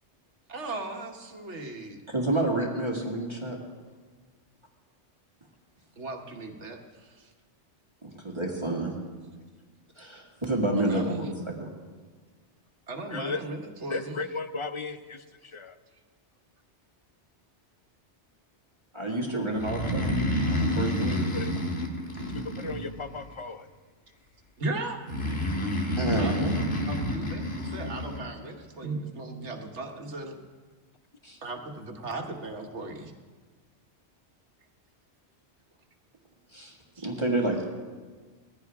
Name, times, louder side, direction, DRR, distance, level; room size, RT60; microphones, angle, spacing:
voice 1, 0.5-2.0 6.0-7.3 10.8-11.3 12.9-14.2 24.6-25.0 26.2-26.3 26.9-30.4 31.4-33.1 36.9-37.1, right 2 dB, 75° right, 3 dB, 1.6 m, -37 dB
voice 2, 2.1-3.6 8.0-9.0 10.0-11.7 18.9-21.4 22.2-22.3 26.0-26.5 28.8-29.0 31.2-31.4 36.5-36.7 37.0-37.6, right 1 dB, 25° right, -1 dB, 2.0 m, -29 dB
voice 3, 13.9-15.8 21.3-21.5 22.3-23.7, left 3 dB, 40° left, 10 dB, 0.5 m, -35 dB
Breathing, 19.5-23.3 25.1-28.2, left 1 dB, 60° left, 2.1 m, -29 dB
20.5 x 15.0 x 3.6 m, 1.4 s
omnidirectional pair, 1.2 m